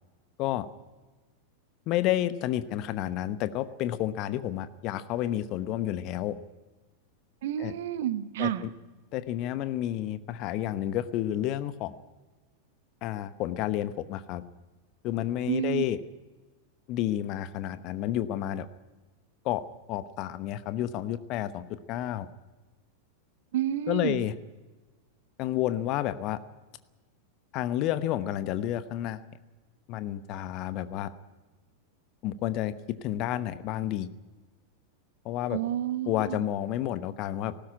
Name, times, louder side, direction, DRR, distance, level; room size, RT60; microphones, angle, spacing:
voice 1, 1.9-6.4 7.6-7.7 8.4-8.7 9.1-11.9 13.0-14.4 15.0-16.0 16.9-18.7 19.4-19.6 19.9-22.3 23.9-24.3 25.4-26.4 27.5-29.2 29.9-31.1 32.2-32.7 33.0-34.1 35.2-35.6 36.1-37.5, left 12 dB, 40° left, 13 dB, 1.0 m, -30 dB
voice 2, 7.4-8.7 15.5-15.8 23.5-24.2 35.5-36.4, right 12 dB, 55° right, 12 dB, 1.2 m, -30 dB
18.5 x 15.5 x 9.9 m, 1.2 s
figure-of-eight pair, 90°, 0 cm